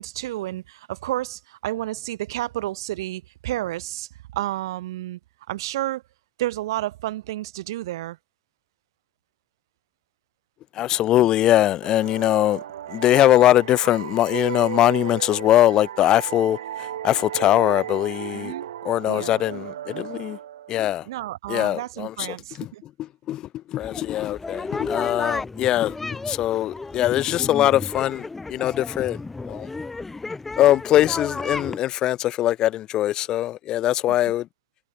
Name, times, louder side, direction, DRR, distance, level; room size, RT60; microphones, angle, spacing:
voice 1, 0.0-5.2 5.5-6.0 6.4-8.2 18.3-18.7 19.1-19.4 21.1-22.8, right 15 dB, 60° right, 7.9 m, -31 dB
voice 2, 10.8-12.6 12.9-16.6 17.0-18.5 18.8-20.4 20.7-21.0 21.5-22.1 22.6-22.7 23.3-23.4 23.7-26.0 26.3-29.2 29.5-29.7 30.6-34.5, left 13 dB, 30° left, 1.0 m, -21 dB
sound 1, 11.8-21.2, right 11 dB, 75° right, 3.6 m, -35 dB
sound 2, 23.8-31.8, left 3 dB, 10° left, 3.3 m, -33 dB
hypercardioid pair, 145°, 3 cm